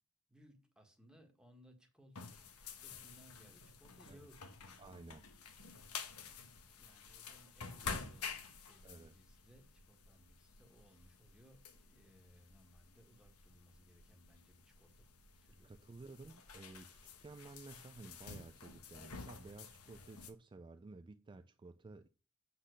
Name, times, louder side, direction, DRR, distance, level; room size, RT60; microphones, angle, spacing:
voice 1, 0.3-2.3 2.8-4.4 6.0-6.2 6.5-15.1 15.4-15.7, equal, 5° right, 1.5 m, -64 dB
sound 1, 2.2-20.3, left 5 dB, 85° left, 1.1 m, -50 dB
voice 2, 4.8-5.2 8.8-9.2 15.6-22.1, right 3 dB, 20° right, 0.3 m, -54 dB
8.2 x 3.9 x 6.5 m
head